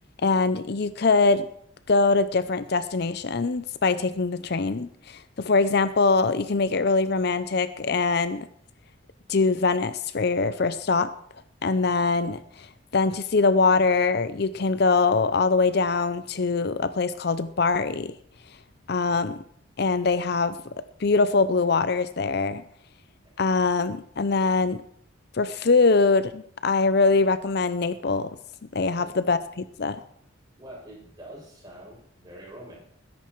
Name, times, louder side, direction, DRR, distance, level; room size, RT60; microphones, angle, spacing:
voice 1, 0.2-1.5 1.9-8.5 9.3-11.1 11.6-12.7 12.9-18.1 18.9-19.4 19.8-20.6 21.0-22.6 23.4-24.8 25.3-28.3 28.7-30.0, left 4 dB, 55° left, 13 dB, 0.6 m, -23 dB
voice 2, 29.0-29.4 30.6-32.8, right 1 dB, 20° right, -3 dB, 6.6 m, -46 dB
20.5 x 10.5 x 4.6 m, 0.65 s
head